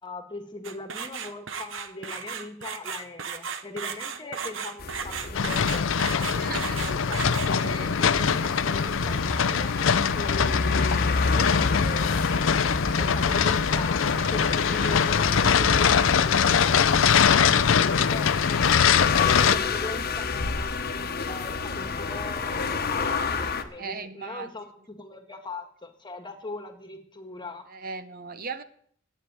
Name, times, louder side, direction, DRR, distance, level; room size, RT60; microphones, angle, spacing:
voice 1, 0.0-5.9 6.2-12.7 12.9-18.7 19.0-20.8 21.3-27.7, left 2 dB, 25° left, 7 dB, 1.6 m, -40 dB
sound 1, 0.6-7.8, right 6 dB, 70° right, 1.0 m, -35 dB
sound 2, 4.8-23.6, left 4 dB, 50° left, 1.1 m, -30 dB
sound 3, 5.3-19.6, left 7 dB, 85° left, 0.5 m, -23 dB
voice 2, 6.4-6.9 7.6-7.9 23.8-24.5 27.7-28.6, right 5 dB, 50° right, 12 dB, 0.8 m, -37 dB
10.0 x 8.5 x 9.1 m, 0.62 s
head